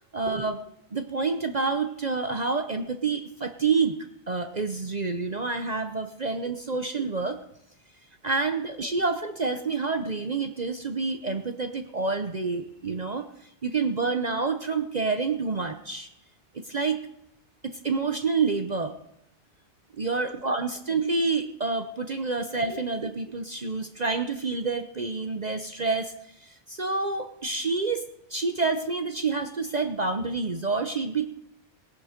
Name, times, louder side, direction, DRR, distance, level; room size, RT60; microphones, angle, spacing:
voice 1, 0.1-0.6 0.9-4.0 4.3-7.4 8.2-13.3 13.6-16.1 16.6-17.0 17.6-18.9 19.9-26.1 26.4-28.0 28.3-31.3, right 4 dB, 40° right, 7 dB, 0.8 m, -28 dB
18.0 x 10.5 x 5.1 m, 0.80 s
omnidirectional pair, 1.2 m